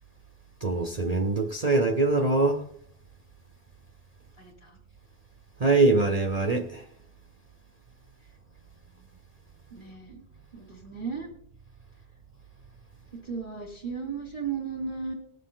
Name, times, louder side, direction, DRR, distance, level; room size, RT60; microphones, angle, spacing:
voice 1, 0.6-2.6 5.6-6.9, right 3 dB, 40° right, 0.9 m, -23 dB
voice 2, 4.4-4.8 8.2-8.3 9.7-10.2 10.5-11.3 13.1-15.1, right 5 dB, 30° left, 2.1 m, -35 dB
18.5 x 6.7 x 3.8 m
omnidirectional pair, 1.1 m